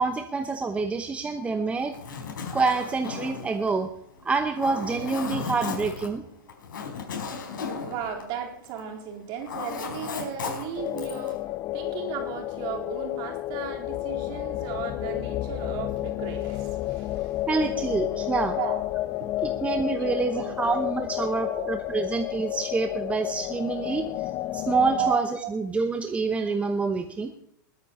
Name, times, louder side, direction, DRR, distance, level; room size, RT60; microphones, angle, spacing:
voice 1, 0.0-1.9 2.5-3.9 4.2-6.2 17.5-18.6 19.4-25.3 25.5-27.3, right 4 dB, 10° right, 7 dB, 0.9 m, -27 dB
Zipper (clothing), 1.8-8.9 9.2-11.3, left 5 dB, 75° left, 4.6 m, -35 dB
voice 2, 7.8-17.4 17.9-18.8 19.1-19.7 19.9-20.7 21.2-22.0 25.0-25.5, right 8 dB, 40° right, 2 dB, 4.0 m, -36 dB
sound 1, 10.8-25.2, left 15 dB, 30° left, 0.5 m, -31 dB
21.0 x 9.7 x 4.2 m, 0.72 s
hypercardioid pair, 125°, 11 cm